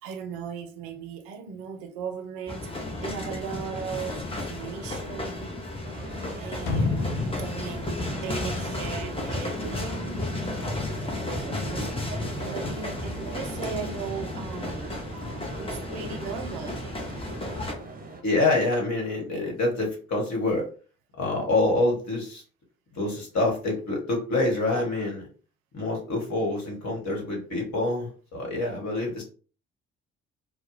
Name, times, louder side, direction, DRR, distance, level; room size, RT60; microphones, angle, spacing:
voice 1, 0.0-2.7 3.0-5.5 6.3-10.4 11.0-15.0 15.5-16.9, right 6 dB, 70° right, 0.5 m, -38 dB
sound 1, 2.5-17.7, left 2 dB, 15° left, 0.7 m, -33 dB
sound 2, 5.8-18.2, right 3 dB, 25° right, 0.8 m, -41 dB
sound 3, 6.7-9.5 9.8-9.9, left 3 dB, 75° left, 0.6 m, -30 dB
voice 2, 18.2-20.6 21.2-22.4 22.9-25.2 25.7-29.2, left 2 dB, 50° left, 1.2 m, -26 dB
2.2 x 2.1 x 3.0 m
hypercardioid pair, 45°, 35 cm